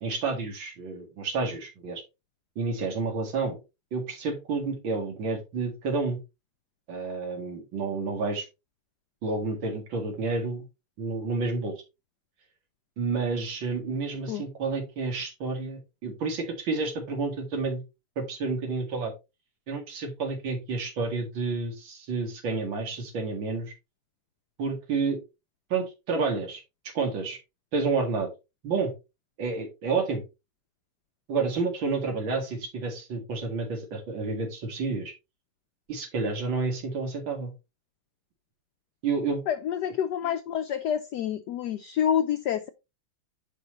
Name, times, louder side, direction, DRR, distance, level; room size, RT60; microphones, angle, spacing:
voice 1, 0.0-2.0 2.6-3.6 3.9-6.2 6.9-8.5 9.2-10.6 11.0-11.7 13.0-17.8 18.2-19.1 19.7-23.7 24.6-25.2 25.7-26.6 26.9-27.4 27.7-28.3 28.6-28.9 29.4-30.2 31.3-35.1 35.9-37.5 39.0-39.4, right 4 dB, 65° right, 2.8 m, -30 dB
voice 2, 39.5-42.7, left 9 dB, 90° left, 0.9 m, -28 dB
8.9 x 5.2 x 3.1 m
omnidirectional pair, 2.4 m